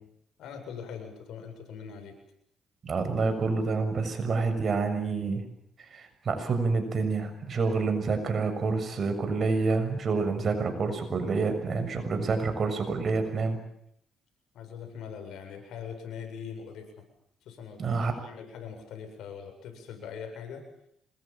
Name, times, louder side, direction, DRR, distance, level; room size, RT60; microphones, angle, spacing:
voice 1, 0.4-2.2 14.5-17.0 17.4-20.6, left 7 dB, 80° left, 5 dB, 7.7 m, -42 dB
voice 2, 2.8-5.4 5.8-13.6 17.8-18.1, right 4 dB, 45° right, 7 dB, 6.7 m, -28 dB
27.0 x 22.0 x 7.5 m, 0.72 s
cardioid pair, 90°, 0 cm